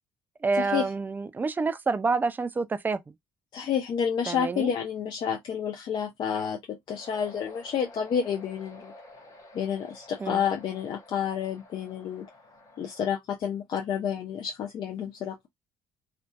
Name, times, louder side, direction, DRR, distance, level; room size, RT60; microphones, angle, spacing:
voice 1, 0.4-3.0 4.3-4.7 10.2-10.4, right 4 dB, 20° right, 0.3 m, -28 dB
voice 2, 3.5-8.9 9.5-12.3 12.8-15.5, left 8 dB, 55° left, 0.5 m, -30 dB
sound 1, 6.9-13.0, left 1 dB, 40° left, 1.0 m, -50 dB
2.5 x 2.2 x 2.2 m
supercardioid pair, 70°, 9 cm